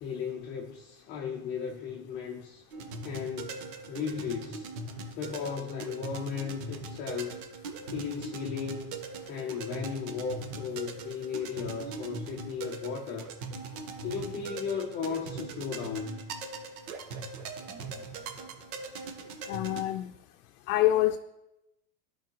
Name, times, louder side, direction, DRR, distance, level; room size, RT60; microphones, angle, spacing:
voice 1, 0.0-2.6 3.0-4.7 5.2-7.4 7.9-8.9 9.3-13.3 14.0-16.3, left 6 dB, 25° left, 0.5 m, -36 dB
sound 1, 2.7-19.8, right 4 dB, 80° right, 1.1 m, -41 dB
voice 2, 19.5-20.1 20.7-21.2, left 14 dB, 80° left, 0.5 m, -25 dB
13.0 x 4.5 x 2.9 m
supercardioid pair, 155°, 42 cm